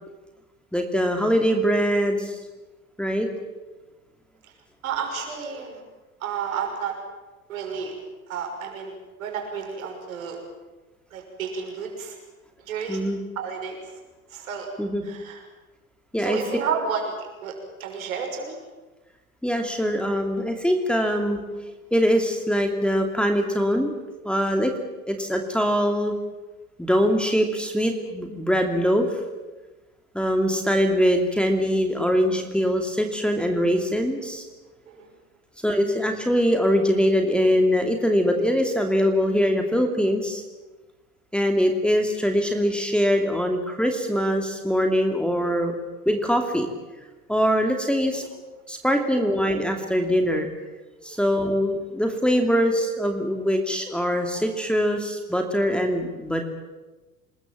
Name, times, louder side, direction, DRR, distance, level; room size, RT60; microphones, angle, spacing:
voice 1, 0.7-2.4 3.0-3.3 12.9-13.2 14.8-15.0 16.1-16.4 19.4-21.4 21.9-23.9 24.2-24.7 25.1-26.1 26.8-29.2 30.1-34.5 35.6-40.4 41.3-45.7 46.1-46.7 47.3-48.2 48.7-50.5 51.0-56.4, equal, ahead, 3 dB, 2.6 m, -22 dB
voice 2, 4.8-5.8 6.2-6.9 7.5-8.0 8.3-10.4 11.1-12.2 12.6-13.1 13.4-14.0 14.3-14.7 15.0-15.4 16.2-18.6 34.9-35.1 49.1-49.3 51.1-51.2, right 6 dB, 65° right, 3 dB, 6.2 m, -31 dB
27.0 x 21.5 x 7.7 m, 1.2 s
figure-of-eight pair, 75°, 44 cm